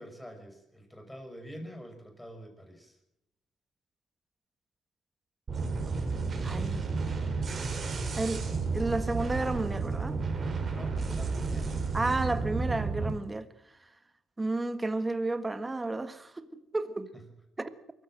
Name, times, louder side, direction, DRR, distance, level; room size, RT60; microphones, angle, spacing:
voice 1, 0.0-3.0 10.6-11.8 17.1-17.3, equal, 5° left, 6.2 m, -46 dB
sound 1, 5.5-13.1, right 4 dB, 40° right, 5.0 m, -32 dB
voice 2, 6.4-6.9 8.2-8.5 8.7-10.2 11.9-13.5 14.4-16.5 16.7-17.1 17.6-17.7, right 2 dB, 20° right, 1.6 m, -31 dB
23.5 x 15.5 x 7.8 m
cardioid pair, 90°, 0 cm